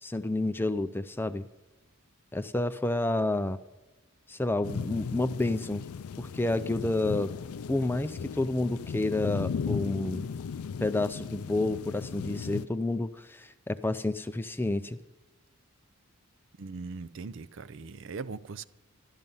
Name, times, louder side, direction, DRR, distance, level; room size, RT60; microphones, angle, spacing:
voice 1, 0.0-1.5 2.3-3.6 4.3-5.8 6.2-7.3 7.7-10.2 10.8-15.0, left 2 dB, 10° left, 0.4 m, -30 dB
sound 1, 4.6-12.6, left 6 dB, 80° left, 0.4 m, -36 dB
voice 2, 16.6-18.6, right 4 dB, 55° right, 0.5 m, -40 dB
12.5 x 12.0 x 5.5 m
head